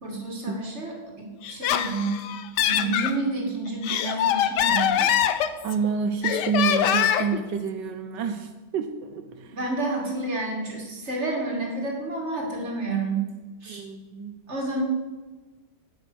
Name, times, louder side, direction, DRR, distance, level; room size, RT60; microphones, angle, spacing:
voice 1, 0.0-2.2 2.6-5.1 9.5-13.3 13.6-13.8 14.5-14.8, right 2 dB, 40° right, 0 dB, 2.7 m, -30 dB
Laughter, 1.4-3.1 3.7-5.9 6.2-7.4, left 10 dB, 75° left, 1.3 m, -23 dB
voice 2, 5.6-9.6 13.7-14.3, right 6 dB, 85° right, 6 dB, 1.4 m, -28 dB
9.3 x 8.9 x 6.3 m, 1.3 s
omnidirectional pair, 1.9 m